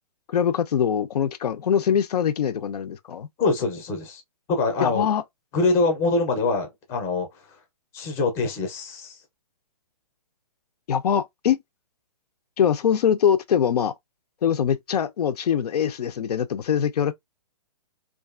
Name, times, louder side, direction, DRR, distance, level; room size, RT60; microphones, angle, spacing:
voice 1, 0.3-3.3 4.8-5.2 10.9-11.6 12.6-13.9 14.4-17.1, left 8 dB, 75° left, 0.4 m, -23 dB
voice 2, 3.4-4.2 4.5-5.1 5.5-7.3 7.9-9.2, left 3 dB, 15° left, 0.5 m, -24 dB
2.5 x 2.3 x 2.3 m
hypercardioid pair, 155°, 20 cm